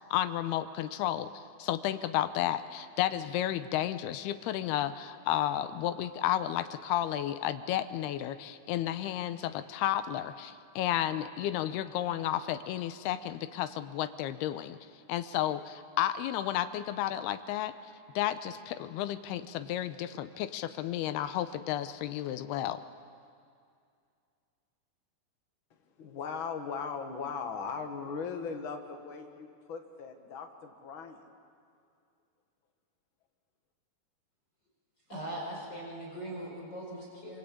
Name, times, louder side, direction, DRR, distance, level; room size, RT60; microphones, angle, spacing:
voice 1, 0.1-14.8 15.1-17.7 18.2-22.8, left 12 dB, 90° left, 11 dB, 2.8 m, -32 dB
voice 2, 26.0-31.2, left 5 dB, 45° left, 5 dB, 1.8 m, -38 dB
voice 3, 35.1-37.4, right 1 dB, 25° left, -4 dB, 5.0 m, -40 dB
26.0 x 25.0 x 8.6 m, 2.3 s
omnidirectional pair, 4.5 m